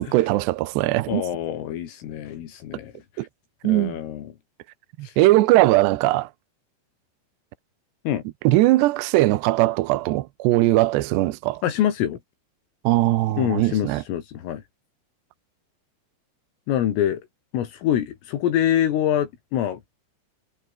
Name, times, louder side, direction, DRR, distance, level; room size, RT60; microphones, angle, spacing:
voice 1, 0.0-1.2 3.2-3.3 3.6-4.0 5.0-6.3 8.4-11.6 12.8-14.0, right 17 dB, 75° right, 2.6 m, -20 dB
voice 2, 1.1-2.9 3.2-3.3 3.6-4.3 5.0-5.1 8.1-8.2 11.6-12.2 13.4-14.6 16.7-17.2 17.5-19.8, left 11 dB, 80° left, 5.0 m, -25 dB
omnidirectional pair, 5.9 m